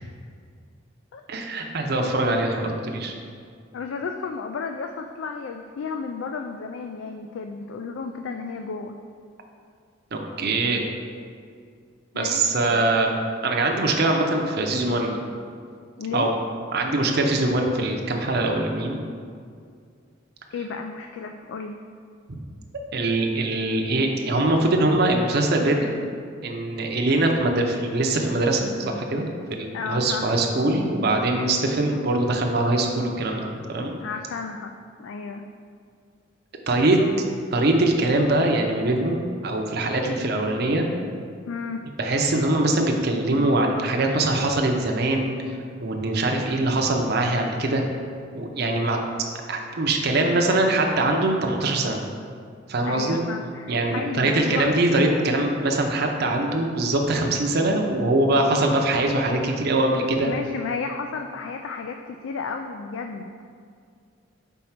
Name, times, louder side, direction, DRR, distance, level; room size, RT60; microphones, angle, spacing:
voice 1, 1.3-3.1 10.1-10.8 12.1-13.1 13.4-15.2 16.1-16.3 16.7-19.0 22.9-25.9 26.4-33.9 36.7-37.0 37.5-40.9 42.0-45.3 45.8-47.8 48.3-49.0 49.5-52.0 52.7-53.2 53.7-60.3, right 2 dB, 55° right, 2 dB, 0.6 m, -22 dB
voice 2, 3.7-9.0 12.1-12.9 16.0-16.3 20.5-21.8 29.7-30.4 34.0-35.5 41.5-41.9 52.8-54.7 60.0-63.3, left 5 dB, 75° left, 5 dB, 0.3 m, -33 dB
4.5 x 4.1 x 5.7 m, 2.2 s
head